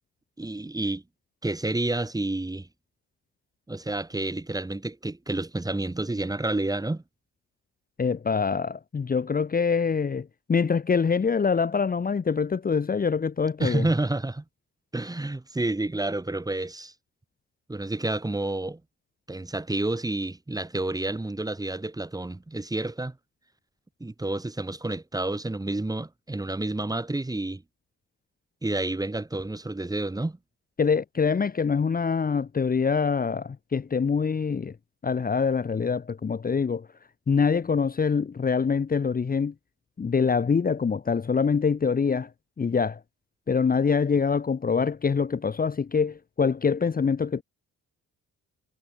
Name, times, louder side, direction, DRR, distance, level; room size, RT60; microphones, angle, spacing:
voice 1, 0.4-1.0 1.4-2.7 3.7-7.0 13.6-14.4 14.9-16.9 17.7-18.8 19.3-23.2 24.0-27.6 28.6-30.4, right 2 dB, 10° right, 2.1 m, -29 dB
voice 2, 8.0-13.9 30.8-34.7 35.0-36.9 37.3-39.5 40.0-42.3 42.6-43.0 43.5-47.4, left 5 dB, 30° left, 1.1 m, -25 dB
cardioid pair, 90°, 30 cm